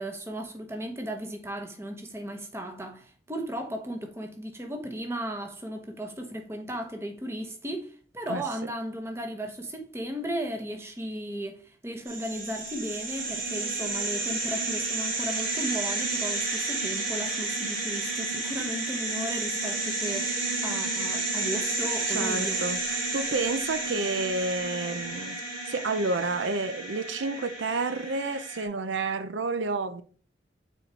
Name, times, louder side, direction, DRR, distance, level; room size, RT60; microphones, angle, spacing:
voice 1, 0.0-22.7, equal, 15° right, 1.0 m, -35 dB
sound 1, 12.1-28.6, right 3 dB, 50° right, 2.7 m, -31 dB
voice 2, 22.1-25.4 25.7-30.0, right 3 dB, 85° right, 0.6 m, -30 dB
6.4 x 4.5 x 4.5 m
head